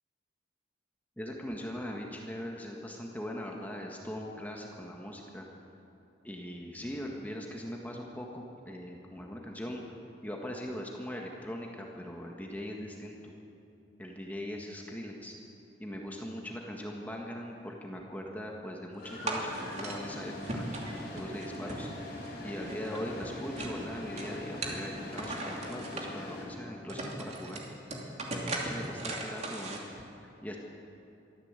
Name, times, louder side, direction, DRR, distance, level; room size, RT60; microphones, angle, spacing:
voice 1, 1.2-5.5 6.2-9.9 10.2-13.3 14.0-15.4 15.8-20.6 21.1-21.9 22.4-27.6 28.3-30.6, equal, 10° left, 0 dB, 1.7 m, -40 dB
sound 1, 19.0-26.5, left 1 dB, 50° left, 6.1 m, -42 dB
sound 2, 19.3-20.0 20.4-22.3 22.5-23.8 24.2-26.1 26.6-26.7 26.9-29.8, right 2 dB, 35° right, 2.8 m, -38 dB
23.0 x 14.0 x 8.3 m, 2.8 s
head